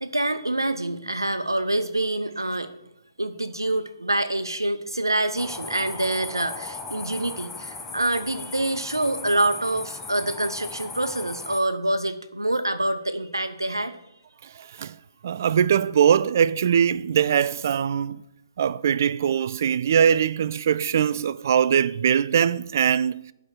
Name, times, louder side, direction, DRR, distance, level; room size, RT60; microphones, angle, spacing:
voice 1, 0.0-2.7 3.2-13.9, right 1 dB, 90° right, 0.9 m, -26 dB
sound 1, 5.4-11.6, left 4 dB, 10° left, 0.9 m, -37 dB
voice 2, 14.6-14.9 15.2-18.2 18.6-23.2, right 8 dB, 45° right, 0.4 m, -21 dB
8.7 x 5.7 x 6.3 m
figure-of-eight pair, 135°, 2 cm